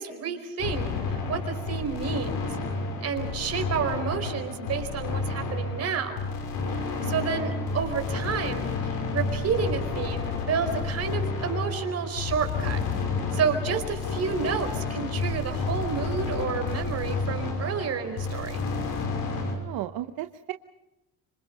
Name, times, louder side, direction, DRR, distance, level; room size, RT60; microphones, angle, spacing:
voice 1, 0.0-2.5 3.0-6.3 6.7-12.8 13.3-18.7, right 6 dB, 45° right, 6 dB, 4.6 m, -30 dB
sound 1, 0.6-19.5, left 4 dB, 90° left, 6.1 m, -30 dB
voice 2, 6.8-7.2 19.4-20.5, right 14 dB, 80° right, 8 dB, 1.0 m, -36 dB
26.5 x 25.5 x 5.5 m, 0.95 s
cardioid pair, 130°, 34 cm